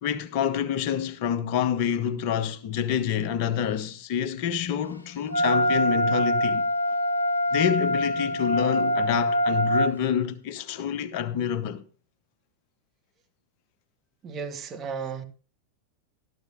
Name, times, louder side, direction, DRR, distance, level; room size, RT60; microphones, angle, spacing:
voice 1, 0.0-6.7 7.5-11.8, left 8 dB, 45° left, 0.8 m, -27 dB
Wind instrument woodwind instrument, 5.3-9.9, equal, 85° left, 0.6 m, -24 dB
voice 2, 14.2-15.2, right 6 dB, 25° right, 1.4 m, -34 dB
14.0 x 12.5 x 2.5 m
figure-of-eight pair, 90°, 0 cm